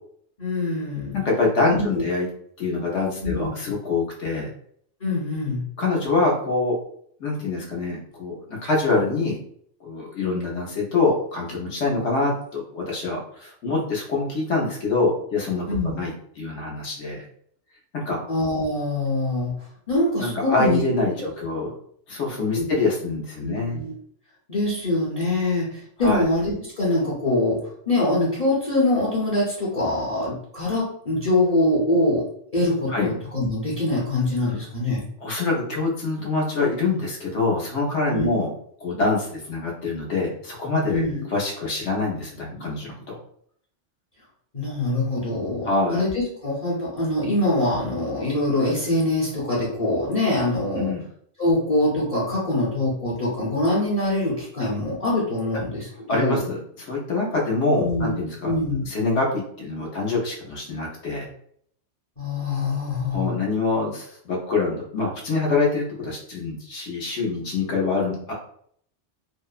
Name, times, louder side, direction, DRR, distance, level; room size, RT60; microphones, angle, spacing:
voice 1, 0.4-1.2 1.7-1.9 3.2-3.5 5.0-5.6 15.7-15.9 18.3-19.5 19.9-20.8 22.6-22.7 23.4-23.9 24.5-27.6 27.9-32.2 32.5-35.0 38.1-38.3 40.9-41.2 44.5-50.9 51.4-56.4 57.8-58.1 58.4-58.9 62.2-63.3, left 2 dB, 35° left, -7 dB, 0.8 m, -24 dB
voice 2, 1.1-2.3 2.6-4.5 5.8-6.7 7.2-9.4 9.8-15.7 15.9-17.2 17.9-18.2 20.2-21.7 22.1-23.8 26.0-26.3 32.9-33.1 34.4-34.5 35.2-38.5 38.8-41.0 41.3-43.2 45.6-46.0 50.7-51.0 56.1-58.6 58.9-61.3 63.1-68.3, left 3 dB, 75° left, -2 dB, 1.1 m, -25 dB
2.7 x 2.1 x 2.4 m, 0.64 s
omnidirectional pair, 1.2 m